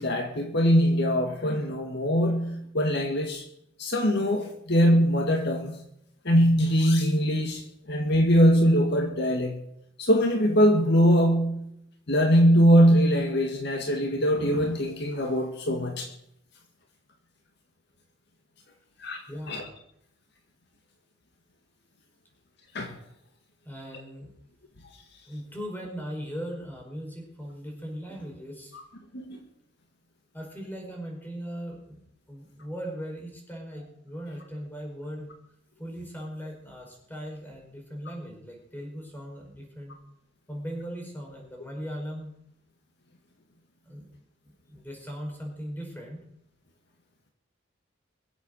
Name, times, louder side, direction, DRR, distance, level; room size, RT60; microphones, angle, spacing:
voice 1, 0.0-3.4 3.8-5.8 6.3-7.6 7.9-9.6 10.0-11.6 12.1-16.1 19.0-19.2 19.5-19.6 22.7-22.9 29.1-29.4, equal, 60° left, 3 dB, 1.9 m, -22 dB
voice 2, 19.3-19.6 23.6-24.3 25.3-28.8 30.3-32.0 32.3-35.3 35.8-40.0 40.5-42.3 43.8-44.1 44.4-46.2, equal, 10° left, 0 dB, 5.1 m, -38 dB
22.5 x 8.2 x 6.5 m, 0.76 s
head